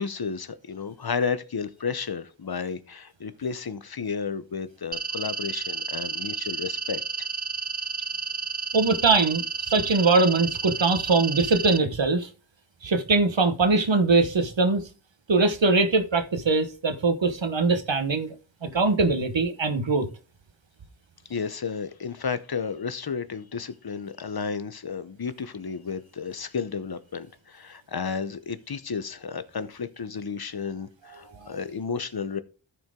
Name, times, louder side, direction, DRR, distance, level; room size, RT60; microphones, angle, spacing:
voice 1, 0.0-7.3 21.3-32.4, left 5 dB, 55° left, 0.8 m, -32 dB
sound 1, 4.9-11.8, right 4 dB, 20° right, 0.4 m, -31 dB
voice 2, 8.7-9.4 9.7-12.3 12.8-14.8 15.3-18.3 18.6-20.1 31.4-31.5, right 3 dB, 70° right, 1.2 m, -22 dB
13.5 x 4.6 x 3.7 m
wide cardioid pair, 65°, 46 cm